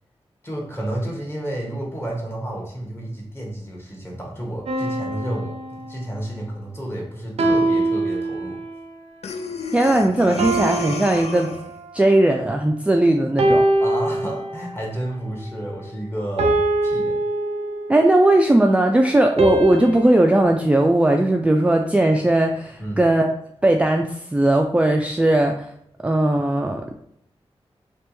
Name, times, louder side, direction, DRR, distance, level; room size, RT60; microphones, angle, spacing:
voice 1, 0.4-8.6 13.8-17.2 22.8-23.0, right 1 dB, 20° left, -2 dB, 1.3 m, -31 dB
sound 1, 4.7-6.3 7.4-8.9 10.4-12.1 13.4-14.9 16.4-18.1 19.4-20.4, right 2 dB, 75° right, 0.5 m, -23 dB
Breathing, 9.2-11.8, left 4 dB, 75° left, 0.4 m, -32 dB
voice 2, 9.7-11.5 11.9-13.7 17.9-23.3 23.6-25.7 26.0-26.9, right 1 dB, 10° right, 3 dB, 0.3 m, -18 dB
3.3 x 3.0 x 3.0 m, 0.74 s
cardioid pair, 60°, 11 cm